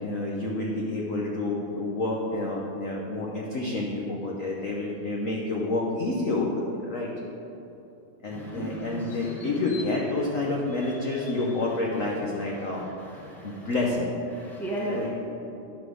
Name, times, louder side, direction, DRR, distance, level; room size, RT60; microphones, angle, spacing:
voice 1, 0.0-7.1 8.2-12.8 13.4-14.1 14.9-15.1, left 2 dB, 60° left, -2 dB, 0.9 m, -29 dB
voice 2, 8.3-9.8 11.2-11.3 13.0-13.7 13.9-14.0 14.3-15.1, right 1 dB, ahead, -4 dB, 1.0 m, -36 dB
10.5 x 4.2 x 6.4 m, 2.9 s
omnidirectional pair, 2.4 m